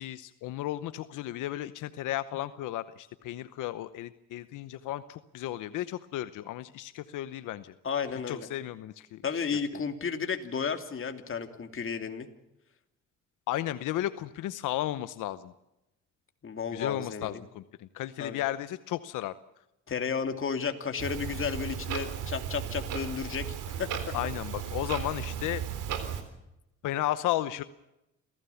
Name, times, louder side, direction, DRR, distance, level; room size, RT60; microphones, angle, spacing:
voice 1, 0.0-7.7 8.3-9.2 13.5-15.5 16.7-19.3 24.1-25.6 26.8-27.6, left 14 dB, 90° left, 13 dB, 0.9 m, -34 dB
voice 2, 7.8-8.5 9.2-12.3 16.4-17.4 18.2-18.4 19.9-23.9, left 6 dB, 45° left, 6 dB, 2.9 m, -33 dB
Clock, 21.0-26.2, right 8 dB, 90° right, 3.8 m, -35 dB
27.5 x 16.5 x 7.1 m, 0.89 s
cardioid pair, 90°, 30 cm